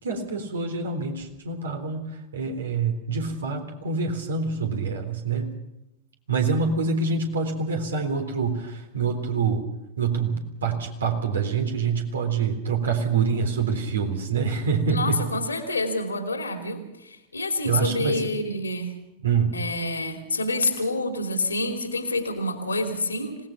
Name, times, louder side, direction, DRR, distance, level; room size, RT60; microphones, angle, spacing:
voice 1, 0.0-5.5 6.3-9.6 10.0-15.2 17.6-18.3 19.2-19.6, right 5 dB, 65° right, 4 dB, 3.6 m, -26 dB
voice 2, 14.9-18.9 19.5-23.4, left 2 dB, 80° left, 5 dB, 3.1 m, -27 dB
26.0 x 18.5 x 5.9 m, 0.90 s
figure-of-eight pair, 90°, 0 cm